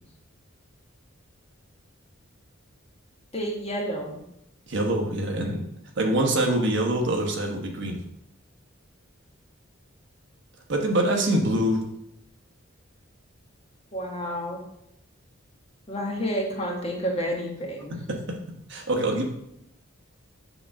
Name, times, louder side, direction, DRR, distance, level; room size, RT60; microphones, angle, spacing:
voice 1, 3.3-4.2 13.9-14.6 15.9-18.0, equal, 30° left, 0 dB, 1.3 m, -30 dB
voice 2, 4.7-5.7 6.0-8.0 10.7-11.8 18.1-18.2 18.7-19.2, right 1 dB, 60° right, 2 dB, 1.2 m, -24 dB
7.0 x 3.6 x 6.3 m, 0.81 s
head